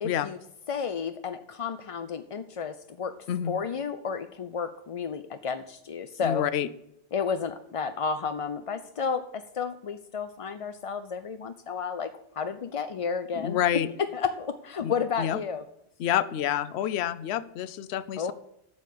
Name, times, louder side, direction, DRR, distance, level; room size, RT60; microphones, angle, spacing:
voice 1, 0.0-0.4 0.7-3.2 3.4-6.4 7.1-13.8 14.1-15.6 18.2-18.3, left 6 dB, 45° left, 9 dB, 0.4 m, -32 dB
voice 2, 6.2-6.7 13.4-13.9 14.8-15.4 16.0-18.3, left 10 dB, 70° left, 15 dB, 0.9 m, -28 dB
7.9 x 7.0 x 8.4 m, 0.78 s
omnidirectional pair, 1.2 m